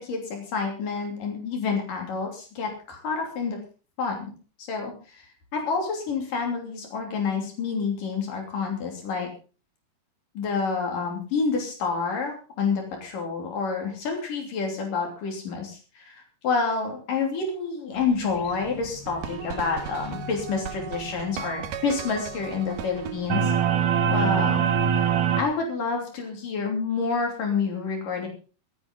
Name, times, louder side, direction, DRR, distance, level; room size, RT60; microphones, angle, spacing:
voice 1, 0.0-3.6 4.0-4.3 4.6-5.3 5.5-9.3 10.3-23.5 24.1-24.7 25.4-28.3, left 4 dB, 85° left, 1 dB, 4.7 m, -28 dB
sound 1, 17.9-25.5, left 4 dB, 70° left, 3.4 m, -45 dB
sound 2, 19.1-25.4, right 8 dB, 85° right, 2.7 m, -26 dB
25.5 x 9.2 x 3.8 m, 0.36 s
omnidirectional pair, 3.7 m